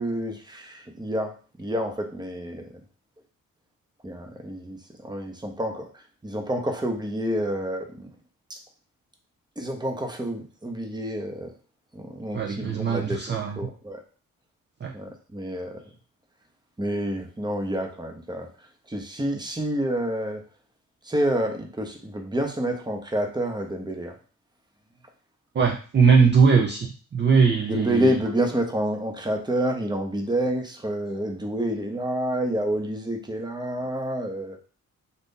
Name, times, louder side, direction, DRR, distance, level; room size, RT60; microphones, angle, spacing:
voice 1, 0.0-2.7 4.0-8.1 8.5-8.6 9.6-11.5 11.9-13.2 13.6-14.0 14.9-15.8 16.8-18.5 18.9-20.4 21.0-24.2 27.7-34.6, right 1 dB, 10° right, 3 dB, 0.8 m, -28 dB
voice 2, 12.3-13.6 14.8-14.9 25.5-28.1, right 5 dB, 30° right, 1 dB, 0.4 m, -20 dB
2.7 x 2.5 x 3.6 m, 0.38 s
cardioid pair, 65°, 35 cm